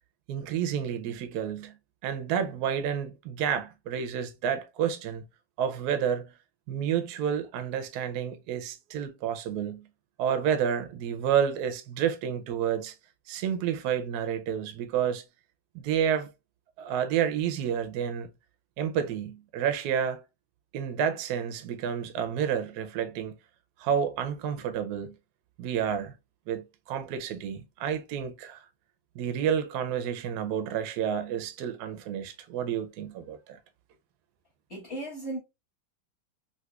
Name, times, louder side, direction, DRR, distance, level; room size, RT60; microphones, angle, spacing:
voice 1, 0.3-1.7 2.0-5.2 5.6-6.3 6.7-9.9 10.2-12.9 13.3-15.2 15.7-16.3 16.8-18.3 18.8-20.2 20.7-23.4 23.8-25.1 25.6-26.1 26.5-28.7 29.1-33.6, right 8 dB, 75° right, 0.9 m, -30 dB
voice 2, 34.7-35.4, right 1 dB, 40° left, 1.1 m, -35 dB
3.9 x 2.7 x 2.3 m
omnidirectional pair, 2.2 m